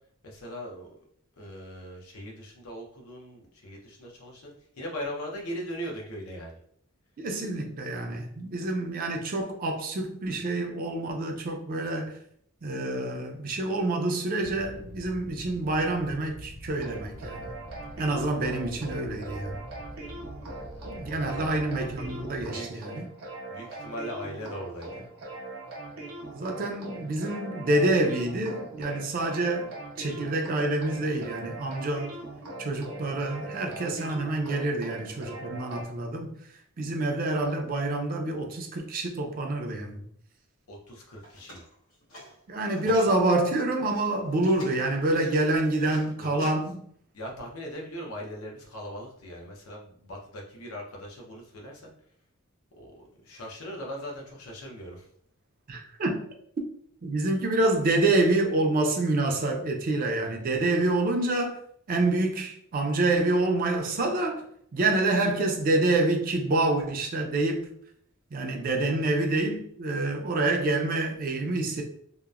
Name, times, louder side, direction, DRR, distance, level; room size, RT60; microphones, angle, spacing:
voice 1, 0.2-0.9 1.4-6.6 20.6-21.7 22.5-22.8 23.5-25.1 40.7-41.6 42.8-43.1 46.2-46.6 47.1-51.9 52.8-52.9 53.2-55.1, equal, 85° left, 0.7 m, -40 dB
voice 2, 7.2-12.2 12.6-17.5 18.0-19.6 20.9-23.1 26.3-32.2 32.6-36.4 36.8-40.0 42.5-46.8 55.7-56.2 57.0-61.6 61.9-64.4 64.7-67.7 68.3-71.8, right 2 dB, 40° right, 0.4 m, -27 dB
Inside diesel train start and cruise, 14.4-22.5, equal, 50° left, 0.5 m, -45 dB
sound 1, 16.7-35.8, right 2 dB, 75° right, 0.7 m, -41 dB
sound 2, 41.2-43.2 43.7-46.5, equal, 65° left, 1.2 m, -48 dB
2.8 x 2.0 x 2.3 m
head